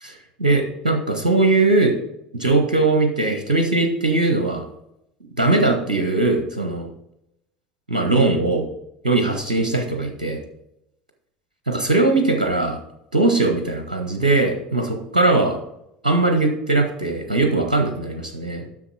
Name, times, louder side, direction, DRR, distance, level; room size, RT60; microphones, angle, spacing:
voice 1, 0.0-1.9 2.3-4.6 5.4-6.9 7.9-8.7 9.0-10.4 11.7-12.8 13.1-15.6 16.0-18.6, right 2 dB, 80° right, 4 dB, 1.0 m, -20 dB
7.5 x 6.3 x 4.7 m, 0.82 s
figure-of-eight pair, 65°, 4 cm